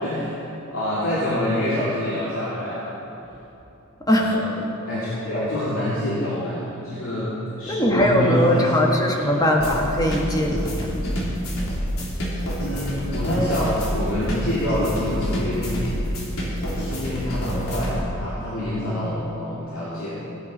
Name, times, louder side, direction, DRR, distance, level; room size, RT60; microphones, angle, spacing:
voice 1, 0.0-2.9 4.2-4.6 4.8-7.3 7.6-9.3 9.6-9.8 12.6-16.0 16.7-20.2, left 1 dB, 65° left, -9 dB, 2.7 m, -26 dB
voice 2, 4.1-4.4 7.7-10.9, left 1 dB, 20° left, 0 dB, 1.5 m, -21 dB
sound 1, 9.6-17.9, equal, 85° left, 3.0 m, -27 dB
17.0 x 9.6 x 5.4 m, 2.8 s
head